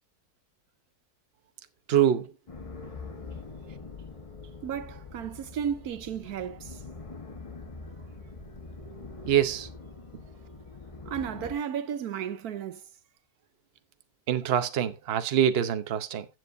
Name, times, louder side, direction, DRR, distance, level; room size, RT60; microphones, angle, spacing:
voice 1, 1.9-2.3 9.3-9.7 14.3-16.3, right 10 dB, 45° right, 1.0 m, -25 dB
sound 1, 2.5-11.5, left 3 dB, 25° left, 1.2 m, -44 dB
voice 2, 4.6-6.8 11.0-12.9, right 8 dB, 75° right, 1.2 m, -34 dB
14.5 x 7.8 x 2.6 m
omnidirectional pair, 1.7 m